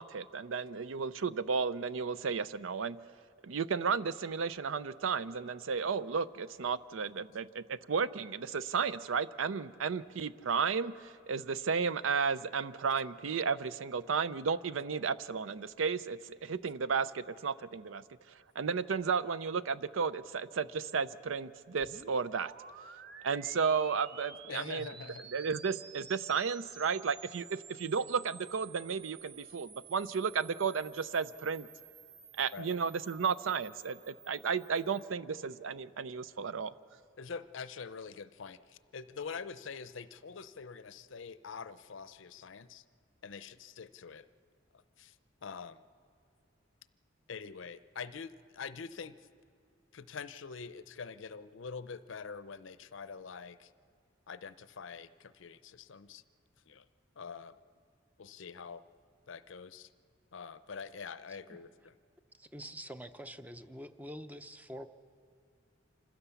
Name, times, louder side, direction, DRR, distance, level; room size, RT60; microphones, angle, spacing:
voice 1, 0.0-3.0 3.4-18.0 18.6-22.5 23.2-24.9 25.3-31.7 32.4-36.7, right 5 dB, 85° right, 16 dB, 0.5 m, -33 dB
sound 1, 21.8-35.1, right 6 dB, 55° right, 0.8 m, -53 dB
voice 2, 24.4-25.2 32.5-32.8 37.2-42.8 43.2-44.2 44.7-45.2 45.4-45.8 47.3-49.2 49.9-53.7 54.3-56.2 56.7-56.9 57.2-57.6 58.2-58.8 59.3-59.9 60.3-61.9, left 5 dB, 75° left, 14 dB, 0.6 m, -45 dB
voice 3, 62.3-64.9, equal, 10° right, 10 dB, 0.5 m, -46 dB
27.0 x 15.5 x 7.0 m, 2.3 s
head